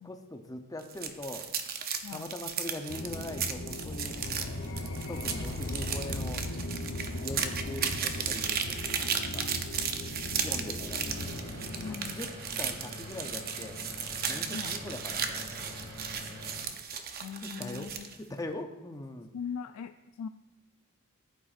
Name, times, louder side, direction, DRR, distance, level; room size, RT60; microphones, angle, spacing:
voice 1, 0.0-1.5 2.1-4.2 5.1-6.4 7.2-9.5 10.4-11.3 11.9-13.8 14.3-15.7 16.9-17.0 17.4-17.9 18.3-19.3, left 1 dB, 15° left, 5 dB, 0.7 m, -41 dB
sound 1, 0.8-18.2, right 7 dB, 45° right, 0.7 m, -35 dB
sound 2, 2.9-12.0, left 1 dB, 65° left, 0.8 m, -38 dB
sound 3, 11.1-16.6, left 1 dB, 60° right, 2.4 m, -44 dB
voice 2, 11.8-12.2 14.5-14.8 17.2-18.1 19.3-20.3, left 6 dB, 85° left, 9 dB, 0.3 m, -40 dB
15.0 x 8.9 x 2.5 m, 1.1 s
head